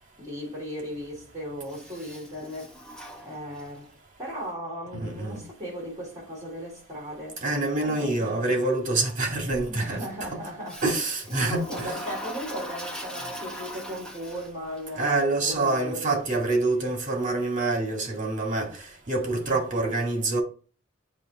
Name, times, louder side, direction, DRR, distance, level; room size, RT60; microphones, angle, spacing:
voice 1, 0.2-3.9 4.2-7.4 7.8-8.6 9.7-10.8 11.3-16.2 19.7-19.8, equal, 15° right, 3.2 m, -37 dB
Toilet flush, 1.6-3.9 10.7-14.8, equal, 5° left, 1.1 m, -40 dB
voice 2, 5.0-5.4 7.4-10.0 10.3-10.4 10.8-11.9 15.0-18.7 19.1-20.4, right 2 dB, 40° right, 2.0 m, -26 dB
8.5 x 2.9 x 4.0 m
head